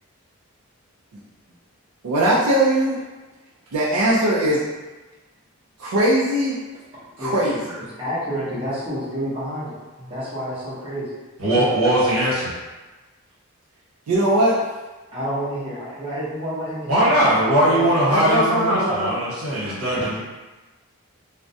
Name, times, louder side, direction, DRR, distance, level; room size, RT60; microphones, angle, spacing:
voice 1, 2.0-3.0 3.7-4.6 5.8-6.6 7.2-7.6 14.1-14.6 18.1-19.2, right 1 dB, 90° right, -6 dB, 0.4 m, -20 dB
voice 2, 7.2-11.1 11.5-11.6 12.1-12.3 15.1-16.9 17.6-17.9 19.9-20.1, equal, 25° right, -11 dB, 0.7 m, -29 dB
voice 3, 11.4-12.5 16.9-20.2, right 1 dB, 75° right, -9 dB, 1.2 m, -20 dB
2.3 x 2.1 x 2.6 m, 1.2 s
head